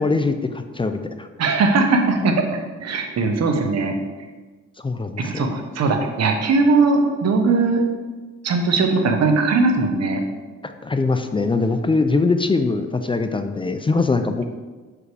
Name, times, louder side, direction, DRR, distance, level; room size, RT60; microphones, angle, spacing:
voice 1, 0.0-1.3 4.8-5.5 10.6-14.4, left 3 dB, 15° left, 8 dB, 0.4 m, -22 dB
voice 2, 1.4-3.9 5.2-7.8 8.4-10.2, right 3 dB, 60° right, 4 dB, 1.1 m, -19 dB
6.3 x 5.0 x 4.8 m, 1.3 s
cardioid pair, 90°, 30 cm